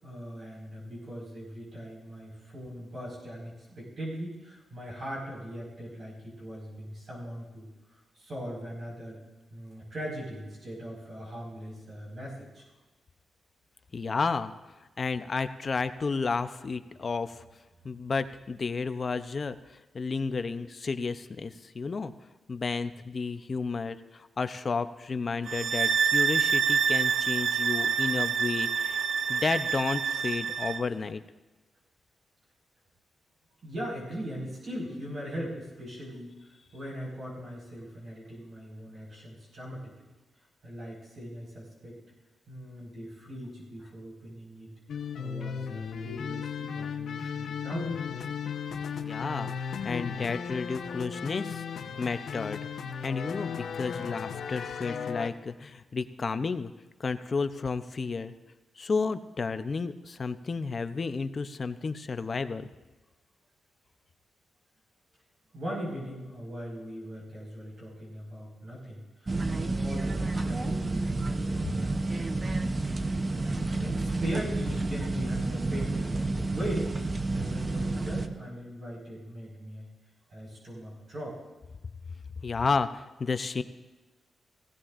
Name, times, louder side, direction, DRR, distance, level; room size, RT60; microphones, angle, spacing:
voice 1, 0.0-9.2 9.5-12.6 33.6-36.3 36.7-40.1 40.6-42.0 42.5-44.7 45.2-48.0 65.5-72.3 73.5-76.9 77.2-79.9 80.3-81.4, equal, 50° right, -5 dB, 4.7 m, -40 dB
voice 2, 13.9-14.5 15.0-17.4 17.8-22.1 22.5-29.0 29.3-31.2 49.0-51.6 52.0-52.6 53.0-56.7 57.0-58.3 58.8-62.7 82.4-83.6, left 4 dB, 35° left, 10 dB, 0.6 m, -32 dB
sound 1, 25.5-30.8, right 6 dB, 75° right, 0.4 m, -27 dB
sound 2, 44.9-55.3, left 7 dB, 75° left, 0.9 m, -36 dB
sound 3, 69.3-78.3, right 2 dB, 30° right, 0.7 m, -30 dB
17.5 x 16.0 x 2.5 m, 1.2 s
wide cardioid pair, 125°, 0 cm